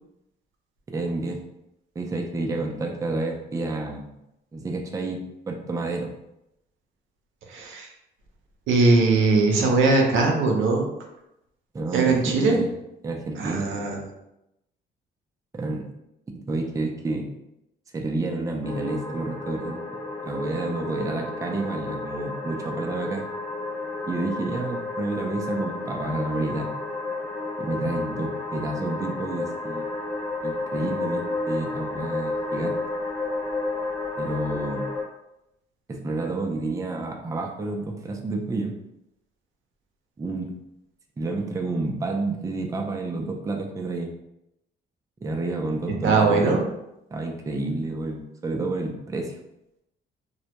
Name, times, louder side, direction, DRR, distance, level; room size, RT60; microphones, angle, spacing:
voice 1, 0.9-1.4 2.0-4.1 4.5-6.1 11.7-12.7 13.0-13.7 15.5-15.9 16.5-17.3 17.9-23.2 24.1-26.7 27.6-29.9 30.4-32.8 34.2-34.9 35.9-38.7 40.2-40.5 41.2-44.1 45.2-46.6 47.1-49.4, right 2 dB, 15° right, 2 dB, 0.4 m, -30 dB
voice 2, 7.5-7.9 8.7-10.9 11.9-12.6 13.4-14.1 46.0-46.7, right 3 dB, 80° right, 1 dB, 0.5 m, -20 dB
sound 1, 18.6-35.0, left 2 dB, 35° left, 1.0 m, -31 dB
2.1 x 2.1 x 2.8 m, 0.86 s
cardioid pair, 90°, 20 cm